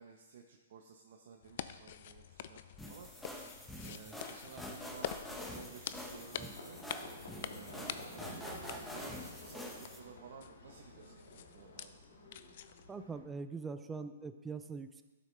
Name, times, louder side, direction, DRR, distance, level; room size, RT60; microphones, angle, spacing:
voice 1, 0.0-2.6 2.9-3.1 3.8-6.8 7.3-11.9, right 6 dB, 60° right, 2 dB, 0.8 m, -54 dB
sound 1, 1.4-13.0, left 10 dB, 55° left, 0.4 m, -48 dB
sound 2, 2.8-10.0, left 1 dB, 5° left, 1.1 m, -46 dB
Livestock farm animals working animals, 4.5-13.2, left 2 dB, 85° left, 2.0 m, -52 dB
voice 2, 12.9-15.0, right 4 dB, 10° right, 10 dB, 0.5 m, -43 dB
12.0 x 6.2 x 3.3 m, 1.2 s
hypercardioid pair, 130°, 0 cm